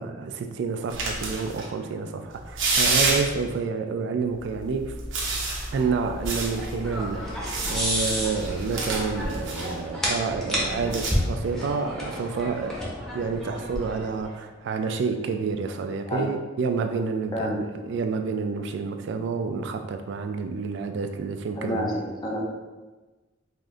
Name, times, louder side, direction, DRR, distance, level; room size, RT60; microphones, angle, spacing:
voice 1, 0.0-5.0 5.7-7.4 7.7-12.8 13.1-21.9, right 5 dB, 65° right, 7 dB, 0.3 m, -29 dB
sound 1, 0.9-1.6 2.3-3.5 4.4-9.7 10.6-11.1, right 3 dB, 85° right, 0.8 m, -29 dB
sound 2, 5.8-14.3, equal, 5° left, 0.8 m, -31 dB
voice 2, 17.3-17.7 21.6-22.4, equal, 20° left, -1 dB, 0.6 m, -29 dB
4.9 x 2.6 x 2.4 m, 1.2 s
head